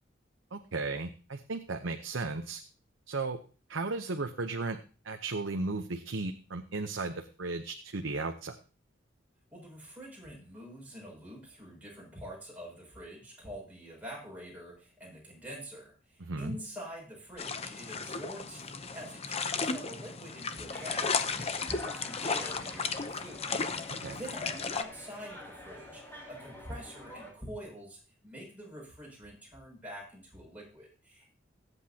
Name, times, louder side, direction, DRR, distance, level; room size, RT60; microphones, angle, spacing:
voice 1, 0.5-2.6 3.1-3.4 3.7-4.8 5.0-8.6 16.2-16.6 24.0-24.2, right 3 dB, 80° right, 5 dB, 0.9 m, -35 dB
voice 2, 9.5-23.5 23.8-31.3, equal, 10° right, -3 dB, 6.6 m, -46 dB
sound 1, 17.4-24.8, left 5 dB, 30° left, 0.8 m, -34 dB
sound 2, 20.7-27.3, left 1 dB, 10° left, 2.7 m, -48 dB
22.5 x 8.2 x 2.9 m, 0.37 s
head